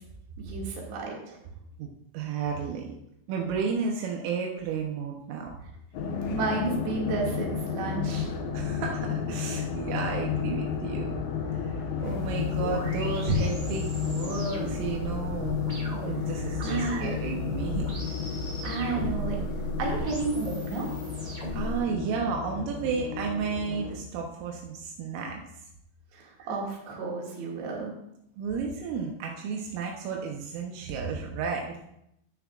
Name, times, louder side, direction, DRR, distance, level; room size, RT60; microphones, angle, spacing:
voice 1, 0.4-1.4 6.3-8.3 16.6-17.2 18.6-19.4 19.8-20.9 26.1-27.9, right 3 dB, 65° right, -3 dB, 4.1 m, -32 dB
voice 2, 2.1-3.0 3.3-5.6 8.5-11.2 11.5-18.1 21.5-25.4 26.4-26.5 28.4-31.8, right 5 dB, 85° right, 0 dB, 3.5 m, -32 dB
sound 1, 5.9-24.0, left 6 dB, 70° left, 2.6 m, -32 dB
sound 2, 6.0-6.8 7.9-8.7 9.9-10.7 11.7-12.6, left 4 dB, 90° left, 3.7 m, -47 dB
sound 3, 12.0-21.8, equal, 40° right, 1.1 m, -39 dB
13.0 x 9.5 x 2.4 m, 0.79 s
omnidirectional pair, 5.7 m